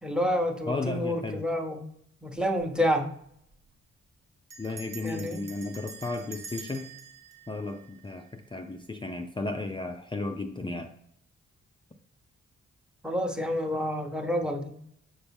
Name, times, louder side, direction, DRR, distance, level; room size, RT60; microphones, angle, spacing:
voice 1, 0.0-1.9 2.2-3.1 5.0-5.4 13.0-14.7, equal, 5° right, 5 dB, 1.0 m, -28 dB
voice 2, 0.7-1.4 4.6-6.9 7.5-10.9, left 2 dB, 15° left, 3 dB, 0.5 m, -34 dB
Bell, 2.4-2.7 3.0-3.1 3.3-3.7 4.5-8.6, right 5 dB, 60° right, 1.0 m, -46 dB
8.0 x 5.7 x 3.5 m, 0.70 s
wide cardioid pair, 110°, 29 cm